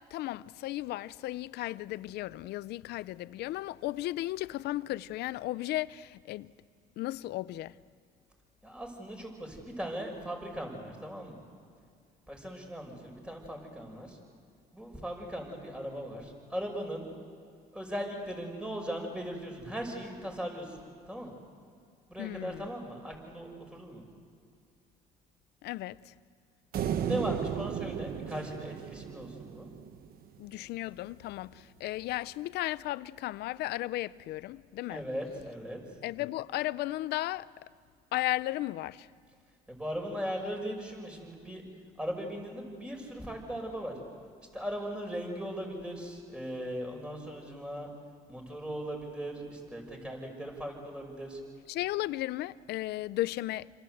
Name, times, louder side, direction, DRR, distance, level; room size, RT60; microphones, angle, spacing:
voice 1, 0.0-6.5 7.0-7.8 22.2-22.7 25.6-26.1 30.4-35.0 36.0-37.5 38.1-39.1 51.7-53.7, left 16 dB, 80° left, 0.6 m, -35 dB
voice 2, 8.6-11.4 12.3-14.2 14.7-17.1 17.7-20.8 21.1-21.3 22.1-24.0 26.8-29.7 34.9-35.8 39.7-41.6 42.0-43.9 44.5-47.9 48.3-51.4, equal, 5° right, 6.3 m, -38 dB
sound 1, 26.7-30.1, right 9 dB, 60° right, 1.3 m, -35 dB
28.0 x 26.0 x 8.0 m
cardioid pair, 110°, 17 cm